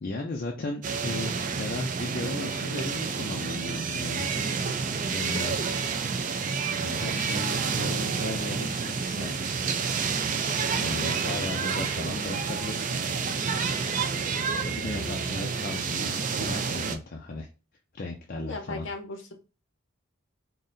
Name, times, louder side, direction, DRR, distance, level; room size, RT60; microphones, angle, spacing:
voice 1, 0.0-4.3 5.1-5.6 6.8-9.4 10.8-13.0 14.6-17.5 17.9-18.9, left 2 dB, 45° left, 1 dB, 0.5 m, -36 dB
sound 1, 0.8-17.0, right 5 dB, 40° right, 0.4 m, -29 dB
voice 2, 10.7-11.2 14.9-15.4 18.4-19.3, left 2 dB, 65° left, 5 dB, 0.8 m, -39 dB
3.9 x 2.1 x 3.8 m, 0.33 s
head